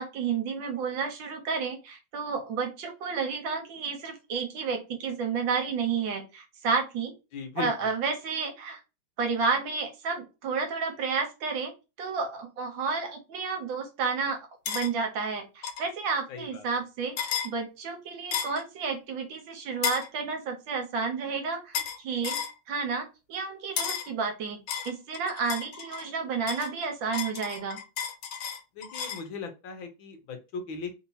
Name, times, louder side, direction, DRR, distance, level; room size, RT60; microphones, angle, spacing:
voice 1, 0.0-7.1 7.6-8.8 9.2-11.7 12.0-14.4 14.7-24.6 24.8-27.8, right 5 dB, 70° right, 4 dB, 1.5 m, -31 dB
voice 2, 7.3-7.9 16.3-16.7 28.7-31.0, left 4 dB, 70° left, 6 dB, 1.5 m, -38 dB
sound 1, 14.7-14.9 15.6-15.9 17.2-17.5 18.3-18.6 19.8-20.1 21.7-22.0 22.2-22.5 23.8-24.1 24.7-26.1 26.5-29.3, left 7 dB, 90° left, 1.5 m, -33 dB
3.6 x 2.8 x 2.7 m, 0.27 s
omnidirectional pair, 2.3 m